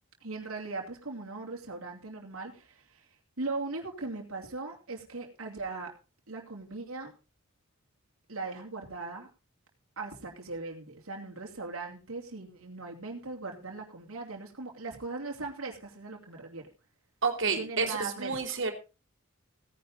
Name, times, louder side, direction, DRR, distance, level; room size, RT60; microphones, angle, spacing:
voice 1, 0.2-3.1 3.4-5.9 6.3-7.1 8.3-9.3 10.0-16.7 17.4-18.6, right 3 dB, 90° right, 0 dB, 2.9 m, -39 dB
voice 2, 17.2-18.7, right 4 dB, 60° right, 2 dB, 3.5 m, -30 dB
17.0 x 10.5 x 3.9 m, 0.31 s
head